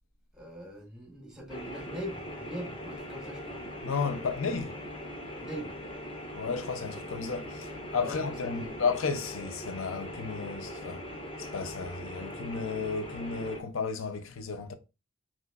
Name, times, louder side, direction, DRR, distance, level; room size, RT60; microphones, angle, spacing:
voice 1, 0.4-3.6 5.4-5.7 8.0-8.1 8.5-8.8, right 1 dB, 5° right, 1.2 m, -41 dB
sound 1, 1.5-13.6, equal, 25° left, 0.9 m, -41 dB
voice 2, 3.8-4.8 6.4-11.0 11.4-14.7, left 5 dB, 85° left, 0.5 m, -33 dB
6.0 x 2.9 x 2.4 m
head